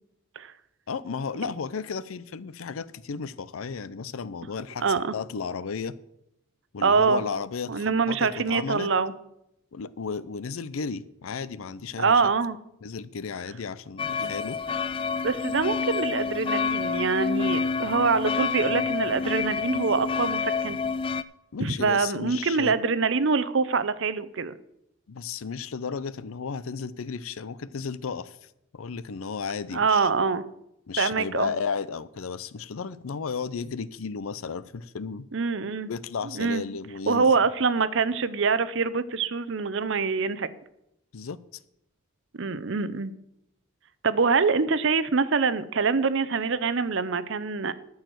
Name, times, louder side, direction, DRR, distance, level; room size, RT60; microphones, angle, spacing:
voice 1, 0.9-4.9 5.1-6.0 6.7-8.9 9.7-12.2 12.8-14.6 21.5-22.7 25.1-30.1 30.9-35.3 35.9-37.4 41.1-41.4, left 5 dB, 85° left, 18 dB, 0.5 m, -34 dB
voice 2, 4.8-5.1 6.8-7.2 7.7-9.1 12.0-12.6 14.2-14.3 15.2-20.8 21.6-24.6 29.7-30.4 31.0-31.5 35.3-35.9 36.3-36.6 37.1-40.5 42.4-43.1 44.0-47.7, right 4 dB, 60° right, 14 dB, 0.7 m, -25 dB
sound 1, 14.0-21.2, left 5 dB, 25° left, 0.4 m, -28 dB
13.0 x 4.8 x 7.8 m, 0.81 s
head